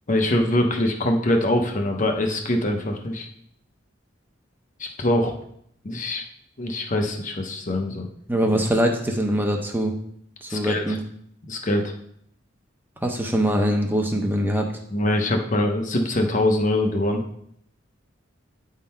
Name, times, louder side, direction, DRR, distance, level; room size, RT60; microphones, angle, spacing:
voice 1, 0.1-3.3 4.8-5.3 5.8-6.2 6.6-8.1 10.5-11.0 11.5-11.9 14.9-17.2, left 1 dB, 40° left, 4 dB, 0.9 m, -23 dB
voice 2, 8.3-9.9 10.4-11.0 13.0-14.7, equal, 10° right, 2 dB, 0.8 m, -23 dB
8.9 x 3.7 x 4.3 m, 0.69 s
head